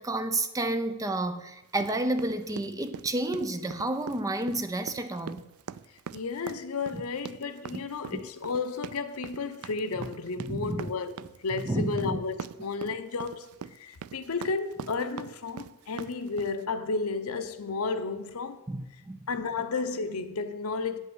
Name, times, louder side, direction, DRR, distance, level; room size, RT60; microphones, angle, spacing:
voice 1, 0.0-5.5 6.9-7.0 7.7-7.8 8.1-8.2 10.5-10.9 11.6-12.2 18.7-19.2, right 2 dB, 15° right, 0.5 m, -30 dB
sound 1, 1.7-16.6, right 7 dB, 75° right, 0.4 m, -42 dB
voice 2, 6.1-11.1 11.4-18.6 19.3-21.0, left 4 dB, 75° left, 0.7 m, -32 dB
8.6 x 5.5 x 7.9 m
head